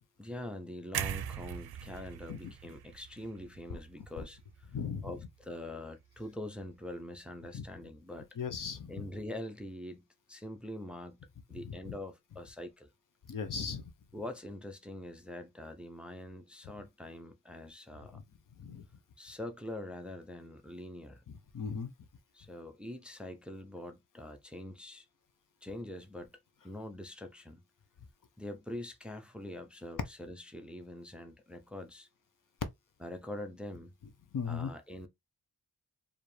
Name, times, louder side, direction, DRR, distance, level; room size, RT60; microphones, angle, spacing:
voice 1, 0.0-4.7 5.0-8.3 8.9-11.2 11.5-12.9 14.1-18.2 19.2-21.2 22.3-25.1 25.6-26.4 26.6-27.6 28.4-32.1 33.0-33.9 34.5-35.1, left 1 dB, 5° right, 0.5 m, -44 dB
sound 1, 0.9-5.0 5.3-5.5, right 10 dB, 85° right, 0.5 m, -41 dB
voice 2, 4.7-5.1 7.5-7.6 8.4-9.0 11.6-11.8 13.3-13.8 18.1-18.2 18.6-18.8 21.3-21.9 34.3-34.7, left 6 dB, 60° left, 0.8 m, -37 dB
4.8 x 2.7 x 3.2 m
wide cardioid pair, 155°, 37 cm